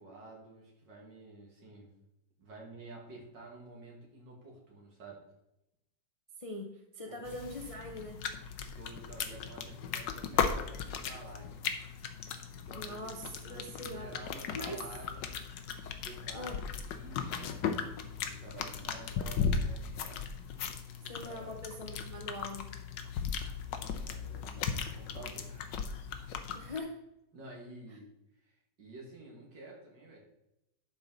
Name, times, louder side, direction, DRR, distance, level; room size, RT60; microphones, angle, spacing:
voice 1, 0.0-1.9 2.4-5.3 7.1-7.2 8.8-11.7 12.5-13.1 13.4-15.4 15.9-20.3 21.0-21.8 23.7-25.7 27.3-28.1 28.4-30.2, right 2 dB, 85° right, -2 dB, 2.9 m, -51 dB
voice 2, 6.4-8.2 12.7-14.1 14.5-14.8 16.3-16.6 21.1-22.7 26.5-27.0, left 1 dB, 40° left, 2 dB, 0.4 m, -42 dB
sound 1, 7.3-26.8, left 6 dB, 85° left, 1.5 m, -37 dB
11.0 x 5.2 x 4.0 m, 0.86 s
omnidirectional pair, 1.9 m